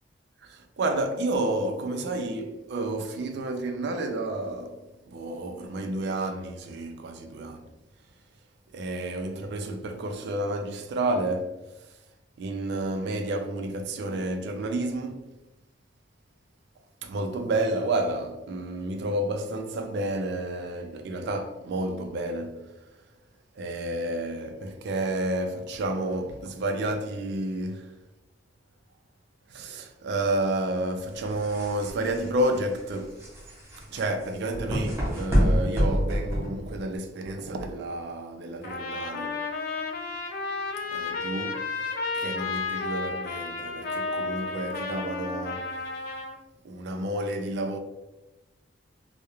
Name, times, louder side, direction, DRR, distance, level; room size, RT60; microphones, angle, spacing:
voice 1, 0.4-7.6 8.7-12.0 12.4-15.3 17.0-22.7 23.6-27.9 29.5-33.2 33.9-39.4 40.9-45.8 46.6-47.8, right 1 dB, 60° right, 0.3 m, -30 dB
sound 1, 31.1-37.0, equal, 15° right, 0.6 m, -27 dB
Trumpet, 38.6-46.4, left 3 dB, 50° left, 0.4 m, -32 dB
2.3 x 2.0 x 2.9 m
head